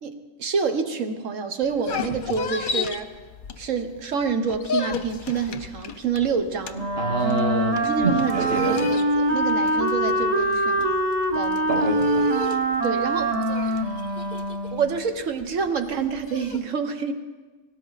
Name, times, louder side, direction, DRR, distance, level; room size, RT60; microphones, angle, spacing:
voice 1, 0.0-3.1 3.6-6.9 7.8-10.9 11.3-11.9 12.8-13.4 13.6-13.7 14.7-17.1, right 5 dB, 80° right, 7 dB, 1.5 m, -27 dB
sound 1, 1.6-4.0 4.3-16.6, left 3 dB, 50° left, 0.8 m, -32 dB
Wind instrument woodwind instrument, 6.7-15.0, right 1 dB, 35° right, 1.0 m, -24 dB
voice 2, 7.0-8.9 11.7-12.3, right 4 dB, 50° right, 5 dB, 1.5 m, -27 dB
18.5 x 17.5 x 4.1 m, 1.3 s
omnidirectional pair, 1.3 m